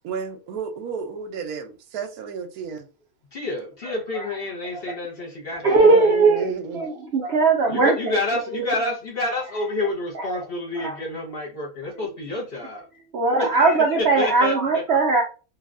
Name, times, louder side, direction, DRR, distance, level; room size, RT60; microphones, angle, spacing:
voice 1, 0.0-2.9 5.8-6.9, right 6 dB, 85° right, 1.1 m, -32 dB
voice 2, 3.3-6.1 7.7-12.9 13.4-14.8, left 2 dB, 45° left, 1.0 m, -29 dB
voice 3, 3.8-4.2 4.7-5.0 5.6-7.9 8.5-8.6 10.8-10.9 13.1-15.2, right 3 dB, 65° right, 0.6 m, -19 dB
3.2 x 2.3 x 2.4 m
omnidirectional pair, 1.5 m